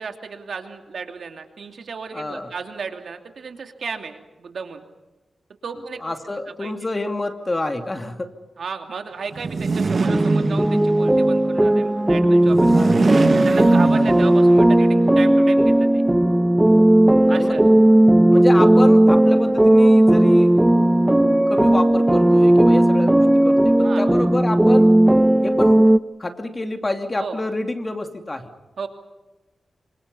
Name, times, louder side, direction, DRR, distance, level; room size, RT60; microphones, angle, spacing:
voice 1, 0.0-4.8 5.6-6.0 6.5-6.7 8.6-13.0 13.4-16.0 17.3-17.6 23.8-24.0 27.2-27.4 28.8-28.9, right 5 dB, 75° right, 5 dB, 2.7 m, -34 dB
voice 2, 2.1-2.5 6.0-8.3 12.7-13.1 14.0-14.1 17.3-17.6 18.3-20.5 21.5-24.9 25.4-25.8 26.2-28.5, left 2 dB, 25° left, 5 dB, 2.6 m, -27 dB
sound 1, 9.3-11.1 12.4-14.6, right 4 dB, 50° right, 1.4 m, -22 dB
sound 2, 10.1-26.0, right 1 dB, 10° right, 0.8 m, -15 dB
27.0 x 26.0 x 5.6 m, 1.1 s
wide cardioid pair, 90°, 0 cm